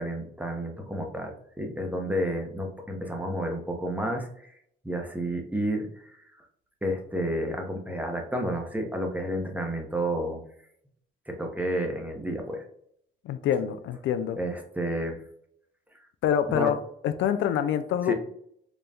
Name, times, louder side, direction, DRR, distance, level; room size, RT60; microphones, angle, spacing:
voice 1, 0.0-4.5 4.8-6.1 6.8-10.4 11.3-12.6 14.4-15.2 16.5-16.7 18.0-18.1, right 1 dB, 10° right, 2 dB, 0.8 m, -31 dB
voice 2, 13.2-14.4 16.2-16.8 17.0-18.1, left 9 dB, 75° left, 10 dB, 0.4 m, -26 dB
4.0 x 2.2 x 3.4 m, 0.68 s
cardioid pair, 90°, 20 cm